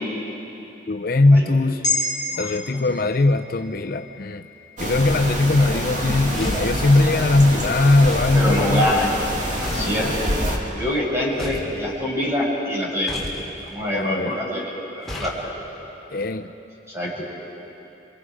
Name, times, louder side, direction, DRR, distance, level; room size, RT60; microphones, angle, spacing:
voice 1, 0.9-1.8 2.4-4.5 4.8-8.9 9.8-10.1 13.9-14.4 16.1-16.5, left 2 dB, 55° left, 6 dB, 0.7 m, -19 dB
sound 1, 1.8-6.3 6.7-6.9, left 2 dB, 25° left, 3.2 m, -31 dB
sound 2, 4.8-10.6, equal, 45° right, 2.7 m, -26 dB
sound 3, 6.3-6.8 8.0-8.4 9.6-10.0 11.4-11.8 13.1-13.4 15.1-15.4, left 1 dB, ahead, 2.8 m, -32 dB
voice 2, 8.3-9.1 9.7-10.1 10.7-13.2 13.7-14.6 15.0-15.5 16.9-17.2, left 1 dB, 15° right, -5 dB, 6.5 m, -24 dB
27.5 x 26.0 x 5.0 m, 3.0 s
head